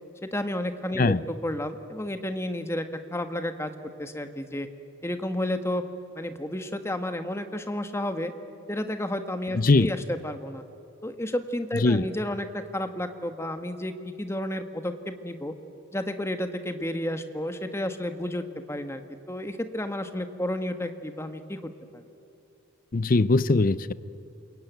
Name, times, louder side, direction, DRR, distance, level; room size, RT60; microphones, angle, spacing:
voice 1, 0.2-1.2 1.4-3.7 4.0-4.7 5.0-5.8 6.2-8.3 8.7-10.6 11.0-15.5 15.9-19.0 19.3-22.0, left 1 dB, 15° left, 8 dB, 1.3 m, -31 dB
voice 2, 9.5-9.9 11.7-12.1 22.9-23.9, left 3 dB, 45° left, 17 dB, 0.6 m, -21 dB
28.0 x 22.5 x 9.2 m, 2.7 s
head